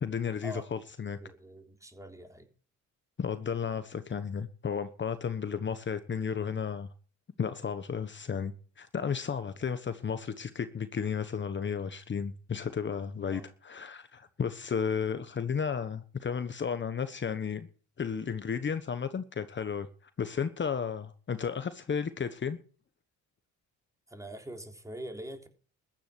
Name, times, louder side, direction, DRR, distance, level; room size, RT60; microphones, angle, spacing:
voice 1, 0.0-1.2 3.2-6.9 7.4-17.7 18.0-19.9 20.2-22.6, left 6 dB, 40° left, 1.2 m, -33 dB
voice 2, 1.2-2.5 13.3-13.5 24.1-25.5, right 1 dB, 10° right, 3.5 m, -43 dB
14.5 x 10.5 x 6.0 m
cardioid pair, 90°, 30 cm